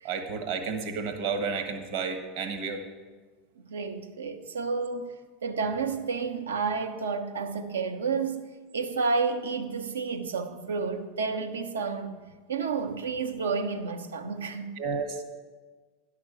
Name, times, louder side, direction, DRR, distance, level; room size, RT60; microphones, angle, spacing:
voice 1, 0.0-2.8 14.8-15.2, right 5 dB, 60° right, 1.3 m, -31 dB
voice 2, 3.6-5.1 5.4-8.4 8.7-12.1 12.5-14.8, right 4 dB, 90° right, 0.8 m, -30 dB
11.0 x 5.9 x 6.7 m
hypercardioid pair, 90°, 0 cm